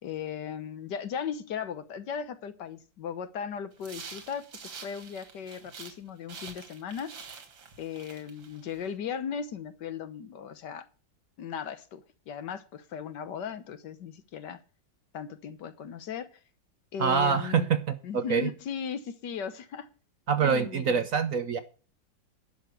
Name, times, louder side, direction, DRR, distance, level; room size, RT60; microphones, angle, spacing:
voice 1, 0.0-7.1 7.8-10.9 11.4-14.6 15.1-16.3 16.9-17.7 18.0-19.9 20.4-21.1, left 7 dB, 65° left, 12 dB, 1.6 m, -37 dB
sound 1, 3.8-6.0 6.3-8.9, right 5 dB, 90° right, 2.5 m, -46 dB
voice 2, 17.0-18.5 20.3-21.6, right 6 dB, 55° right, 10 dB, 1.0 m, -25 dB
11.0 x 6.5 x 8.2 m, 0.36 s
omnidirectional pair, 2.0 m